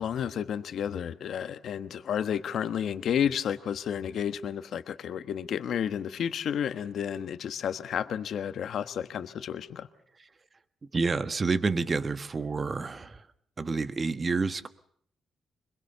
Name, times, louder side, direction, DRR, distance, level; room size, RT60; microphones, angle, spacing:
voice 1, 0.0-9.9, left 8 dB, 65° left, 10 dB, 1.3 m, -31 dB
voice 2, 10.9-13.2 13.6-14.7, right 4 dB, 30° right, 12 dB, 1.2 m, -29 dB
24.5 x 22.0 x 6.9 m, 0.63 s
cardioid pair, 110°, 0 cm